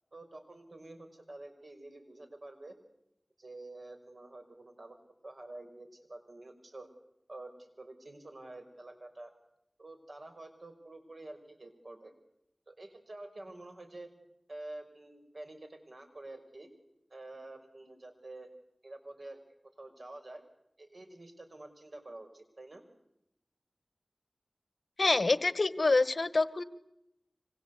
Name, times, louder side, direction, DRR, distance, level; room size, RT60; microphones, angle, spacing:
voice 1, 0.1-2.7 3.4-5.0 5.2-6.9 7.3-9.3 9.8-12.1 12.7-14.1 14.5-16.7 17.1-18.5 18.8-19.4 19.8-20.4 20.8-22.8, right 2 dB, 65° right, 7 dB, 5.6 m, -48 dB
voice 2, 25.0-26.6, left 3 dB, 65° left, 14 dB, 1.3 m, -26 dB
25.5 x 25.0 x 8.4 m, 0.82 s
wide cardioid pair, 60°, 0 cm